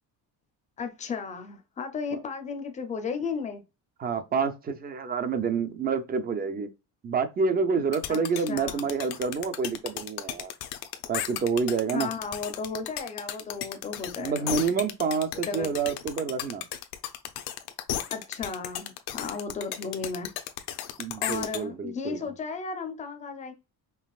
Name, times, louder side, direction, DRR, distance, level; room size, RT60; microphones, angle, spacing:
voice 1, 0.8-3.6 8.1-8.8 11.9-14.6 15.3-15.7 18.1-20.3 21.2-23.5, left 5 dB, 20° left, 0.6 m, -34 dB
voice 2, 4.0-6.7 7.0-10.5 11.1-12.1 14.2-16.6 21.0-22.2, right 5 dB, 25° right, 0.5 m, -28 dB
sound 1, 7.9-21.6, left 11 dB, 75° left, 0.8 m, -34 dB
5.5 x 2.9 x 2.4 m
cardioid pair, 175°, 38 cm